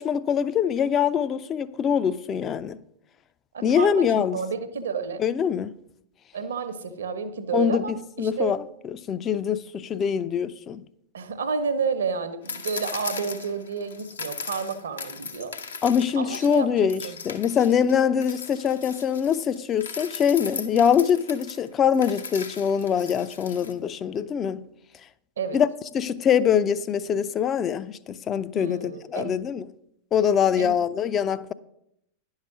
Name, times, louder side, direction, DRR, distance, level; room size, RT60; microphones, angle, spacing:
voice 1, 0.0-2.8 3.6-4.4 5.2-5.7 7.5-8.6 9.1-10.8 15.8-24.6 25.5-25.7 25.9-29.7 30.1-31.5, left 8 dB, 25° left, 0.4 m, -23 dB
voice 2, 3.5-5.2 6.3-8.6 11.1-15.6 16.2-17.2 25.4-25.6 28.5-29.3 30.6-30.7, right 5 dB, 65° right, 0.9 m, -30 dB
sound 1, 12.5-16.6 16.9-23.7, left 5 dB, 75° left, 0.8 m, -38 dB
11.0 x 5.7 x 5.8 m
figure-of-eight pair, 90°, 0 cm